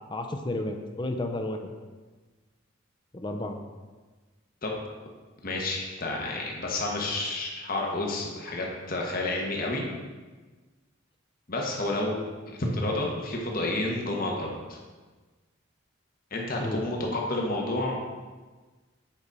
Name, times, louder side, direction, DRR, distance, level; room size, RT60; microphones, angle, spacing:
voice 1, 0.1-1.7 3.1-3.6 16.6-16.8, left 1 dB, 20° left, 5 dB, 0.5 m, -32 dB
voice 2, 5.4-9.9 11.5-12.2 12.5-14.8 16.3-18.0, left 2 dB, 45° left, -1 dB, 1.2 m, -30 dB
8.0 x 4.9 x 4.1 m, 1.3 s
head